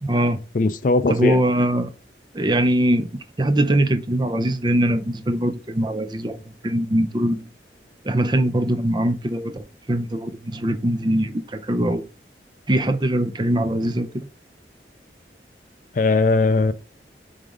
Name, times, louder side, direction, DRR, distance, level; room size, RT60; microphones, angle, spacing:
voice 1, 0.0-0.4 1.1-1.9 2.3-3.1 3.4-7.5 8.0-12.1 12.7-14.3, right 1 dB, 25° right, 0.5 m, -22 dB
voice 2, 0.5-1.4 16.0-16.7, left 3 dB, 45° left, 0.4 m, -19 dB
5.3 x 3.6 x 4.9 m
head